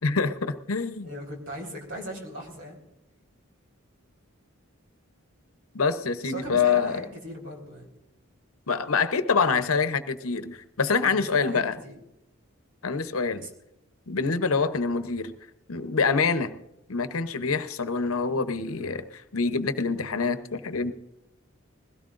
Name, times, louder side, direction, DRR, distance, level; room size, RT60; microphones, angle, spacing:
voice 1, 0.0-1.1 5.7-7.0 8.7-11.8 12.8-13.5 14.1-15.3 15.7-16.6 16.9-20.9, left 5 dB, 85° left, 11 dB, 0.9 m, -26 dB
voice 2, 1.0-2.8 6.2-7.9 11.1-12.0 13.4-13.5, right 1 dB, 65° right, 1 dB, 4.2 m, -38 dB
21.0 x 16.5 x 2.5 m, 0.88 s
head